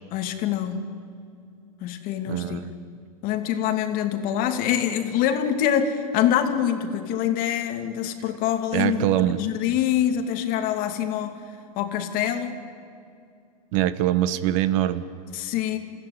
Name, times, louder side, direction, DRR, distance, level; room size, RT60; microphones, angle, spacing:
voice 1, 0.1-0.8 1.8-2.6 3.2-9.1 9.4-11.4 11.8-12.6 15.3-15.8, left 10 dB, 45° left, 7 dB, 2.6 m, -25 dB
voice 2, 2.3-2.7 8.7-9.4 13.7-15.1, right 13 dB, 55° right, 14 dB, 1.3 m, -23 dB
29.0 x 15.5 x 10.0 m, 2.5 s
hypercardioid pair, 110°, 20 cm